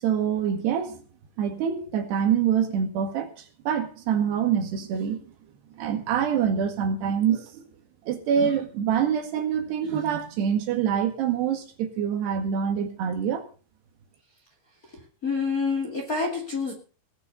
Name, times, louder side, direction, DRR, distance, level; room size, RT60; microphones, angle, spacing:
voice 1, 0.0-1.0 1.4-3.3 3.7-5.2 5.8-7.7 8.1-13.4, right 8 dB, 80° right, 6 dB, 4.0 m, -25 dB
voice 2, 15.2-16.7, left 4 dB, 25° left, 0 dB, 2.3 m, -27 dB
19.5 x 6.7 x 6.6 m, 0.38 s
omnidirectional pair, 4.7 m